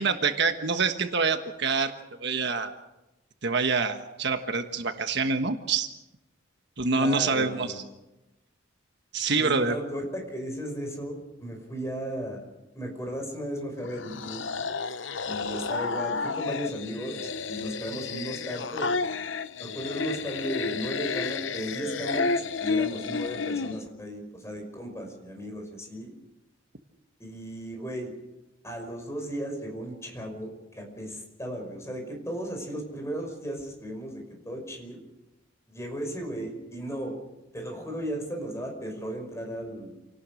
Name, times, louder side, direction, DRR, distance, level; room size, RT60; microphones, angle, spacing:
voice 1, 0.0-1.9 2.2-2.7 3.4-5.9 6.8-7.8 9.1-9.8, right 4 dB, 60° right, 6 dB, 1.4 m, -26 dB
voice 2, 6.9-7.8 9.2-12.5 12.7-14.5 15.3-19.1 19.6-26.2 27.2-28.1 28.6-35.0 35.7-37.1 37.5-40.0, equal, 15° left, 3 dB, 5.6 m, -35 dB
sound 1, 13.8-23.8, left 4 dB, 65° left, 0.8 m, -31 dB
28.5 x 18.5 x 6.4 m, 0.98 s
head